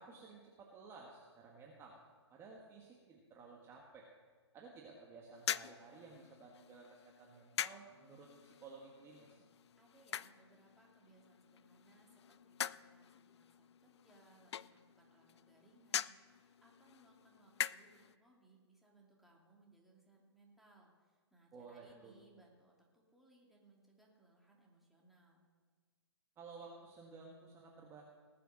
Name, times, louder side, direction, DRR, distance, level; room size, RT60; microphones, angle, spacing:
voice 1, 0.0-2.0 2.3-4.1 4.5-9.5 21.5-22.1 26.4-28.0, right 4 dB, 20° right, -1 dB, 1.5 m, -55 dB
sound 1, 5.3-18.1, left 9 dB, 70° left, 0.4 m, -45 dB
voice 2, 9.8-25.5, right 2 dB, ahead, -3 dB, 2.5 m, -67 dB
19.0 x 6.8 x 6.4 m, 1.5 s
hypercardioid pair, 135°, 15 cm